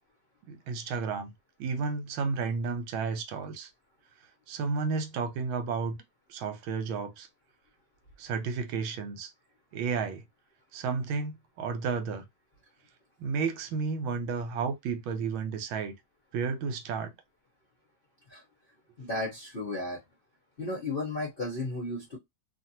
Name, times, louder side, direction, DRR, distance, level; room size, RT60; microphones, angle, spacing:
voice 1, 0.5-1.3 1.6-3.7 4.5-6.0 6.3-7.3 8.2-9.3 9.7-10.2 10.7-12.2 13.2-15.9 16.3-17.1, right 5 dB, 80° right, 1.5 m, -32 dB
voice 2, 19.0-20.0 20.6-22.2, left 2 dB, 45° left, 0.7 m, -34 dB
3.0 x 2.5 x 2.7 m
omnidirectional pair, 2.2 m